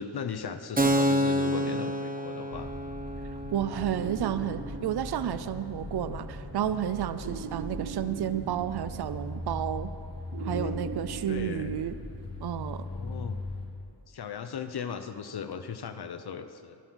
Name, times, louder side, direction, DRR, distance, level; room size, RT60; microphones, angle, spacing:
voice 1, 0.0-2.7 10.4-10.8 11.3-11.7 12.9-13.4 14.1-16.8, left 6 dB, 65° left, 9 dB, 0.8 m, -37 dB
Keyboard (musical), 0.8-8.1, equal, 20° right, 1.1 m, -31 dB
sound 1, 2.5-13.7, left 1 dB, 35° left, 3.3 m, -40 dB
voice 2, 3.5-9.9 10.4-11.9 12.4-12.8, right 10 dB, 65° right, 13 dB, 0.6 m, -31 dB
sound 2, 4.0-5.7 7.2-9.3 10.3-12.5, right 6 dB, 90° right, 1.0 m, -41 dB
23.0 x 7.9 x 6.3 m, 2.5 s
wide cardioid pair, 100°, 41 cm